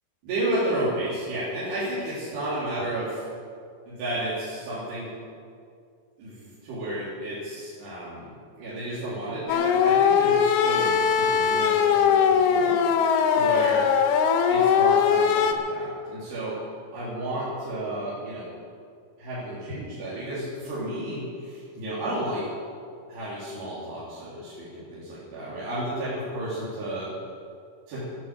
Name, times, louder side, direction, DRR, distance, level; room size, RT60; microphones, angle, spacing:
voice 1, 0.2-3.2 3.9-5.1 6.2-13.1 13.3-13.8 14.5-16.5 16.9-18.4 19.2-22.4 23.1-27.1 27.9-28.0, right 1 dB, 90° right, -11 dB, 5.8 m, -32 dB
sound 1, 9.5-15.5, left 7 dB, 75° left, 2.7 m, -20 dB
14.5 x 9.5 x 8.3 m, 2.3 s
omnidirectional pair, 4.7 m